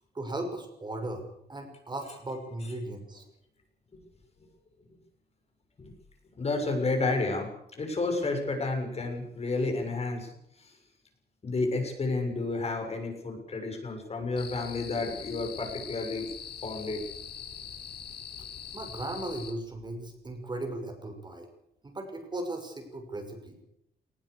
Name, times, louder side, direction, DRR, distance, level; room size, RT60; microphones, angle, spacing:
voice 1, 0.1-1.2 1.5-3.2 18.7-21.5 21.8-23.6, right 1 dB, 25° right, 5 dB, 6.0 m, -37 dB
voice 2, 6.4-10.3 10.6-10.7 11.4-16.3 16.6-17.0, left 3 dB, 40° left, 3 dB, 7.0 m, -31 dB
sound 1, 14.4-19.5, left 7 dB, 85° left, 3.6 m, -42 dB
20.0 x 20.0 x 8.4 m, 0.77 s
cardioid pair, 120°, 17 cm